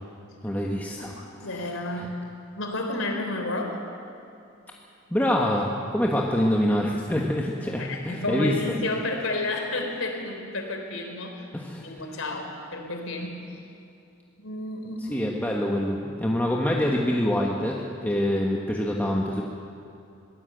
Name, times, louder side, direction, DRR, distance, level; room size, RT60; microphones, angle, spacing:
voice 1, 0.4-1.1 1.5-1.7 2.0-2.1 5.1-8.5 11.5-12.2 15.1-19.4, left 1 dB, 10° left, -2 dB, 1.4 m, -26 dB
voice 2, 1.0-2.3 2.5-3.8 7.8-11.5 11.8-13.4 14.4-15.3, left 2 dB, 90° left, 3 dB, 3.6 m, -31 dB
22.0 x 16.5 x 8.0 m, 2.6 s
head